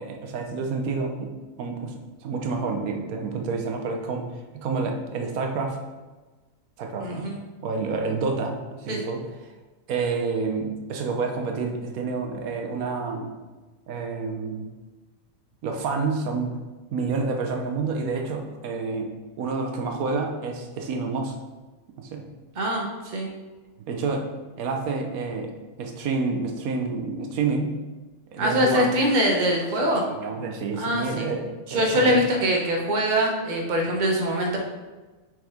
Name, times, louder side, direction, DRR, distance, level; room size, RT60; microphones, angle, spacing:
voice 1, 0.0-1.3 1.6-4.2 4.5-5.8 6.8-7.3 7.6-9.2 9.9-13.3 13.9-14.7 15.6-16.5 16.9-21.3 22.0-22.3 23.9-24.2 24.6-27.8 28.3-28.9 29.8-32.2, right 4 dB, 90° right, 3 dB, 1.2 m, -29 dB
voice 2, 7.0-7.4 8.9-9.0 22.6-23.3 28.4-30.0 30.8-31.3 31.7-34.6, equal, 35° right, 0 dB, 1.0 m, -23 dB
6.3 x 4.9 x 3.5 m, 1.2 s
omnidirectional pair, 1.5 m